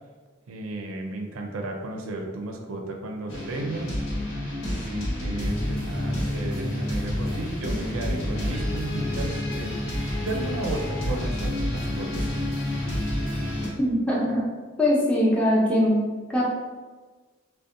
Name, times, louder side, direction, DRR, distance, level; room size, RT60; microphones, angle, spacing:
voice 1, 0.5-4.0 4.7-9.8 10.2-12.6, right 2 dB, 85° right, 2 dB, 0.4 m, -34 dB
sound 1, 3.3-13.7, left 1 dB, 90° left, 1.1 m, -29 dB
voice 2, 13.8-14.4 14.8-16.0 16.3-16.4, left 1 dB, 5° left, -5 dB, 0.5 m, -21 dB
2.6 x 2.1 x 2.4 m, 1.3 s
head